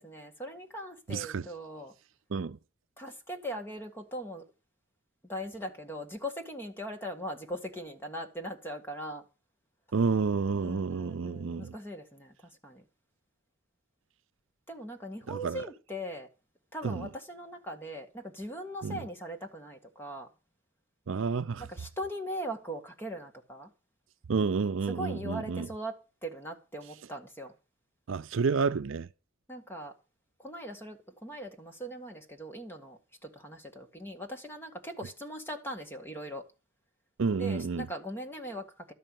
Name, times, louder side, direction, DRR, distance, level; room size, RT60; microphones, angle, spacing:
voice 1, 0.0-1.9 3.0-4.4 5.3-9.2 10.6-12.8 14.7-16.3 16.7-20.3 21.6-23.7 24.9-27.5 29.5-29.9 30.4-36.5 37.4-38.9, equal, 10° left, 1.8 m, -40 dB
voice 2, 1.1-1.5 2.3-2.6 9.9-11.7 15.3-15.6 16.8-17.1 18.8-19.0 21.1-21.6 24.3-25.7 28.1-29.1 37.2-37.9, right 5 dB, 70° right, 0.5 m, -30 dB
12.5 x 5.6 x 9.1 m
head